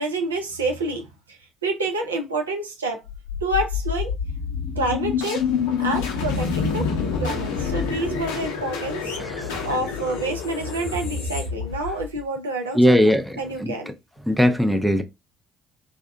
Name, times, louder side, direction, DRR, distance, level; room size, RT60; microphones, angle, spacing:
voice 1, 0.0-3.0 3.4-4.1 4.8-5.4 5.8-6.9 7.2-9.2 9.6-13.9, right 2 dB, 80° right, 0.4 m, -28 dB
sound 1, 3.1-12.2, left 6 dB, 70° left, 0.5 m, -27 dB
voice 2, 9.2-9.5 12.8-13.7 14.3-15.0, equal, ahead, 0.5 m, -19 dB
2.7 x 2.1 x 2.5 m
figure-of-eight pair, 50°, 0 cm